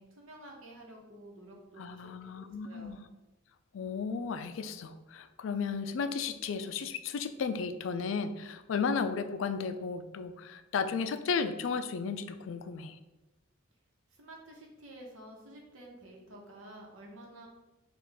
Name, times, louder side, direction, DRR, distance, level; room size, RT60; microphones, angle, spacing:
voice 1, 0.0-3.0 14.1-17.5, right 1 dB, 85° right, -1 dB, 1.0 m, -51 dB
voice 2, 1.8-3.0 3.7-13.0, left 5 dB, 70° left, 10 dB, 0.3 m, -34 dB
5.6 x 2.5 x 3.5 m, 1.1 s
head